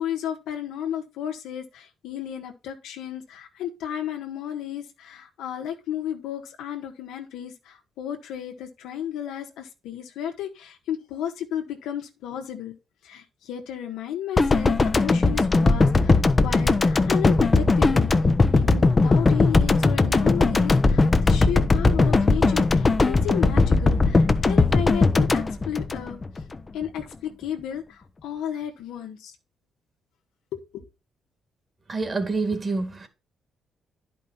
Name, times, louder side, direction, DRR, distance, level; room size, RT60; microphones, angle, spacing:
voice 1, 0.0-12.8 13.0-18.1 18.5-26.2 26.7-29.3 30.5-30.8, left 10 dB, 90° left, 1.5 m, -33 dB
sound 1, 14.4-26.6 26.8-27.0, left 3 dB, 25° left, 0.8 m, -19 dB
voice 2, 31.9-33.1, right 3 dB, 35° right, 2.1 m, -27 dB
10.5 x 5.3 x 4.2 m
cardioid pair, 90°, 0 cm